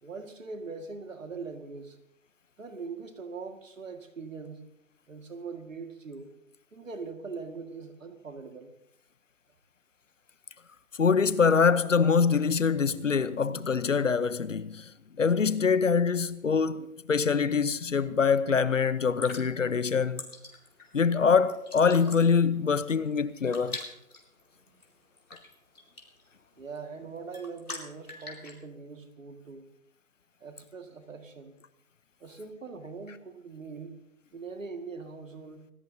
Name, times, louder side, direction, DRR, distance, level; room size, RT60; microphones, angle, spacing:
voice 1, 0.0-2.0 2.6-4.7 5.1-6.3 6.7-8.7 26.6-29.7 30.4-31.6 32.2-34.0 34.3-35.7, right 4 dB, 60° right, 2.0 m, -42 dB
voice 2, 11.0-20.3 20.9-23.8, left 5 dB, 60° left, 0.9 m, -24 dB
sound 1, 19.0-28.6, left 2 dB, 85° left, 4.6 m, -45 dB
25.5 x 16.5 x 2.8 m
figure-of-eight pair, 165°, 44 cm